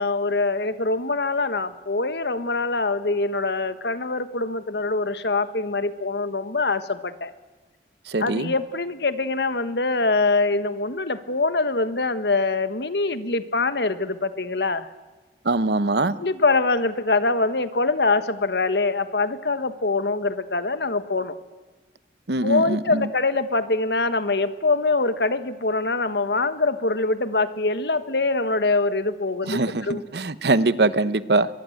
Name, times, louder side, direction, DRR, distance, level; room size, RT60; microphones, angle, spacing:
voice 1, 0.0-7.3 8.2-14.9 16.2-21.3 22.4-30.0, left 3 dB, 75° left, 12 dB, 1.4 m, -24 dB
voice 2, 8.1-8.5 15.4-16.2 22.3-23.1 29.5-31.5, right 2 dB, 70° right, 15 dB, 1.0 m, -22 dB
23.5 x 22.5 x 8.0 m, 1.3 s
head